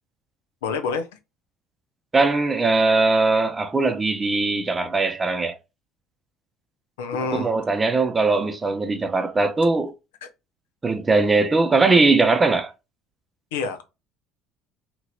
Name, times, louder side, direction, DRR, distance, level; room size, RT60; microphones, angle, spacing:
voice 1, 0.6-1.1 7.0-7.5 10.2-10.3 13.5-13.8, left 5 dB, 80° left, 0.6 m, -27 dB
voice 2, 2.1-5.6 7.3-9.9 10.8-12.7, right 3 dB, 25° right, 0.7 m, -20 dB
3.0 x 2.9 x 2.3 m
hypercardioid pair, 65°, 0 cm